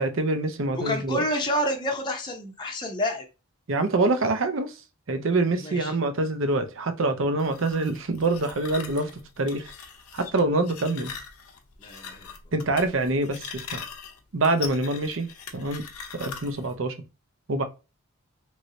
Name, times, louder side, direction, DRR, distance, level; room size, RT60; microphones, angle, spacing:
voice 1, 0.0-1.2 3.7-4.7 5.1-9.1 9.4-9.7 10.1-11.1 12.5-13.8 14.3-15.3 15.5-15.8 16.1-16.9 17.5-17.6, right 2 dB, 65° right, 0.6 m, -25 dB
voice 2, 0.7-3.2 5.6-5.9 11.8-12.3, left 1 dB, 20° left, 0.6 m, -29 dB
sound 1, 7.4-16.7, left 6 dB, 85° left, 0.6 m, -41 dB
3.1 x 2.7 x 2.7 m
head